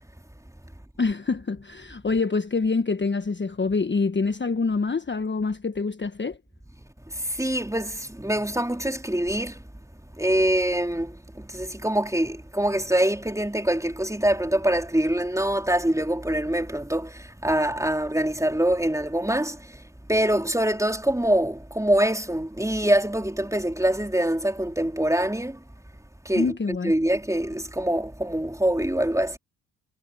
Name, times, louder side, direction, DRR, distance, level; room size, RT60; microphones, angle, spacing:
voice 1, 1.0-6.4 26.3-26.9, left 4 dB, 25° left, 1.3 m, -26 dB
voice 2, 7.1-9.6 10.2-19.8 20.1-25.6 26.3-26.5 26.8-29.4, right 1 dB, 5° right, 3.8 m, -24 dB
hypercardioid pair, 45°, 42 cm